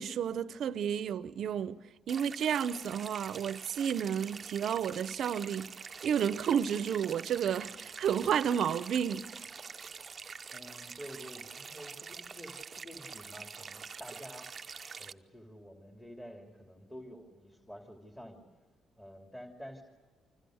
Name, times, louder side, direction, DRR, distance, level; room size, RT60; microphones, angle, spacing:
voice 1, 0.0-1.8 2.1-5.7 6.0-9.3, right 8 dB, 70° right, 0.8 m, -31 dB
sound 1, 2.1-15.1, right 5 dB, 40° right, 0.8 m, -46 dB
voice 2, 10.5-18.4 19.0-19.8, equal, 10° left, 2.9 m, -49 dB
29.0 x 25.5 x 6.5 m
cardioid pair, 90°, 0 cm